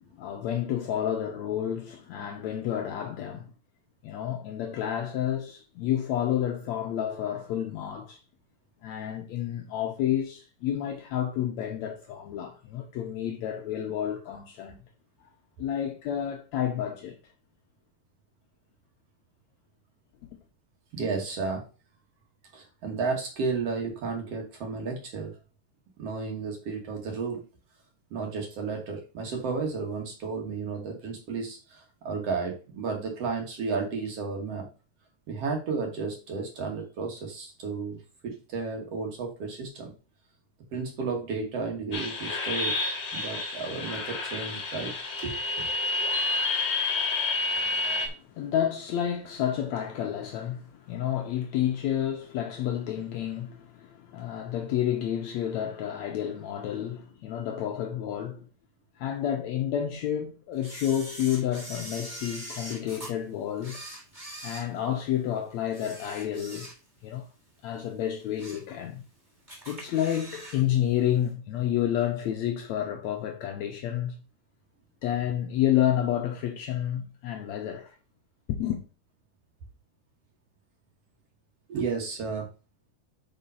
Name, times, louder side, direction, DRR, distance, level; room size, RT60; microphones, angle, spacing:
voice 1, 0.2-3.5 4.0-8.2 8.8-14.8 15.6-17.2 20.2-20.3 47.6-58.5 59.0-63.8 64.4-66.7 67.0-67.3 67.6-69.0 69.7-74.2 75.0-78.0 78.5-78.8, left 10 dB, 75° left, 1.8 m, -30 dB
voice 2, 20.9-21.6 22.5-25.3 26.0-27.4 28.1-34.7 35.3-39.9 40.7-42.7 43.1-44.9 45.2-45.7 81.7-82.5, right 4 dB, 55° right, 2.1 m, -33 dB
sound 1, 41.9-48.1, left 3 dB, 40° left, 1.7 m, -29 dB
Camera, 60.6-63.1 63.6-65.2 65.7-67.1 67.4-67.6 68.1-68.7 69.0-69.1 69.5-70.6 70.9-71.0, right 1 dB, 15° right, 2.2 m, -43 dB
5.1 x 5.1 x 5.4 m
omnidirectional pair, 3.8 m